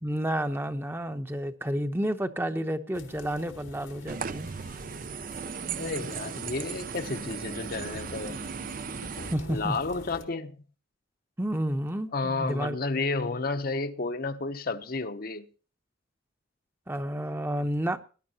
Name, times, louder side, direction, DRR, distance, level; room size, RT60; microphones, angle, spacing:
voice 1, 0.0-4.5 9.2-9.8 11.4-12.8 16.9-18.0, right 1 dB, 10° right, 0.8 m, -30 dB
sound 1, 2.9-10.2, left 2 dB, 85° left, 2.0 m, -47 dB
sound 2, 4.1-9.4, right 6 dB, 45° right, 0.5 m, -37 dB
voice 2, 5.8-8.4 9.5-10.6 12.1-15.5, left 3 dB, 50° left, 0.8 m, -31 dB
20.0 x 11.0 x 2.9 m
head